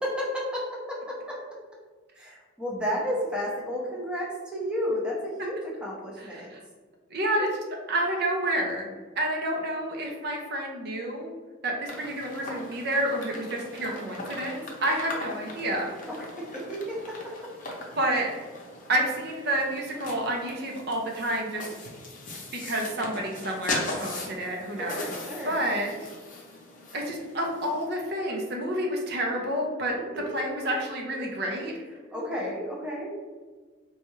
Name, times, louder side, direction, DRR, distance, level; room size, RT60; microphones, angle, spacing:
voice 1, 0.0-1.4 2.2-6.5 16.1-17.5 24.8-25.6 30.3-30.4 32.1-33.1, equal, 5° right, -4 dB, 0.6 m, -32 dB
voice 2, 6.2-6.6 7.1-8.9 9.2-11.3 11.6-15.9 18.0-18.3 18.9-21.7 22.5-25.1 25.4-26.1 26.9-29.9 30.3-31.7, right 1 dB, 55° right, 0 dB, 0.6 m, -29 dB
sound 1, 11.9-27.8, left 2 dB, 40° left, 0.6 m, -40 dB
4.2 x 2.3 x 3.0 m, 1.4 s
head